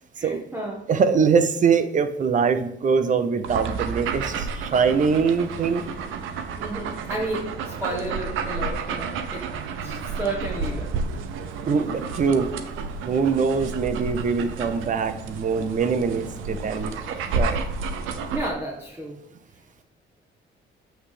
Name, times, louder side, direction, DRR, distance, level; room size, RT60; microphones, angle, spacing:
voice 1, 0.1-0.9 6.6-9.5 9.8-11.0 18.3-19.2, right 2 dB, 10° right, -3 dB, 1.3 m, -32 dB
voice 2, 0.9-5.8 11.7-12.5 13.1-17.6, right 5 dB, 40° right, 9 dB, 0.7 m, -23 dB
sound 1, 3.4-18.5, right 5 dB, 90° right, 0.7 m, -31 dB
8.0 x 3.4 x 5.0 m, 0.83 s
cardioid pair, 90°, 20 cm